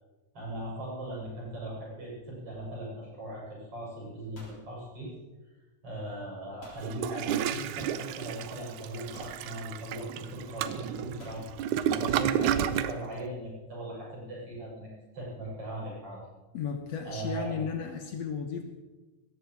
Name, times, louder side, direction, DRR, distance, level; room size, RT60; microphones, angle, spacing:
voice 1, 0.3-5.1 5.8-11.4 11.9-14.9 15.1-16.2 17.0-17.6, right 1 dB, 50° right, -5 dB, 8.2 m, -39 dB
sound 1, 4.3-5.6 6.6-6.9 8.1-8.2 9.1-9.5 11.2-11.5, left 1 dB, 45° left, 4.7 m, -52 dB
Toilet flush, 6.8-13.0, right 10 dB, 80° right, 2.1 m, -31 dB
voice 2, 16.5-18.6, left 7 dB, 65° left, 6 dB, 2.0 m, -34 dB
17.5 x 14.0 x 4.7 m, 1.2 s
omnidirectional pair, 3.4 m